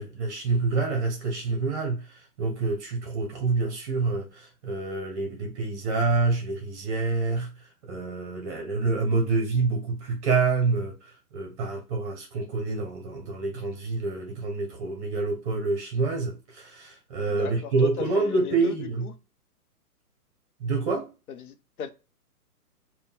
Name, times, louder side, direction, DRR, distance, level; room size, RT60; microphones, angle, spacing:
voice 1, 0.0-7.5 7.8-19.0 20.6-21.1, right 3 dB, 25° right, 0.7 m, -27 dB
voice 2, 17.3-19.1 21.3-21.9, left 6 dB, 65° left, 0.8 m, -37 dB
3.6 x 2.2 x 4.1 m
hypercardioid pair, 145°, 46 cm